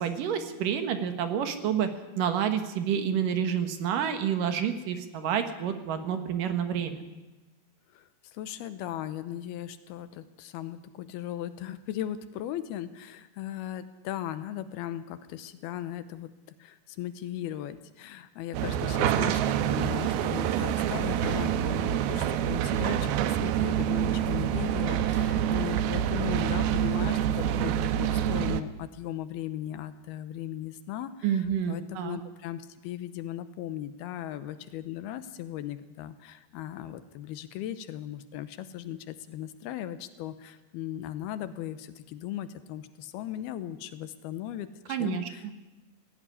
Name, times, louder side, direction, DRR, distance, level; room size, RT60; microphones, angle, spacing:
voice 1, 0.0-1.9 2.2-7.0 31.2-32.2 44.9-45.5, right 8 dB, 65° right, 8 dB, 2.8 m, -29 dB
voice 2, 7.9-16.3 16.6-45.6, left 11 dB, 85° left, 12 dB, 2.9 m, -37 dB
sound 1, 18.5-28.6, right 10 dB, 85° right, 2.8 m, -27 dB
17.5 x 16.5 x 9.9 m, 1.1 s
omnidirectional pair, 4.4 m